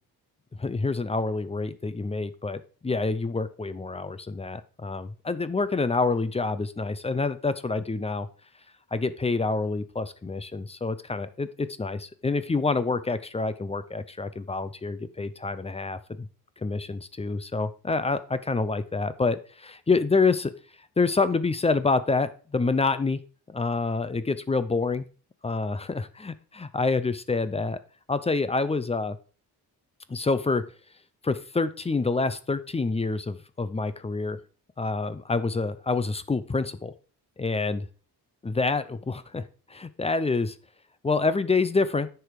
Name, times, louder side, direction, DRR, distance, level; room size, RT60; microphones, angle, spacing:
voice 1, 0.6-8.3 8.9-16.3 16.6-20.5 21.0-23.2 23.5-25.1 25.4-27.8 28.1-29.2 30.1-30.6 31.2-34.4 34.8-36.9 37.4-37.8 38.4-39.4 39.7-40.5 41.0-42.1, left 3 dB, 15° left, 13 dB, 0.5 m, -27 dB
10.0 x 6.9 x 4.8 m, 0.38 s
wide cardioid pair, 175°, 40 cm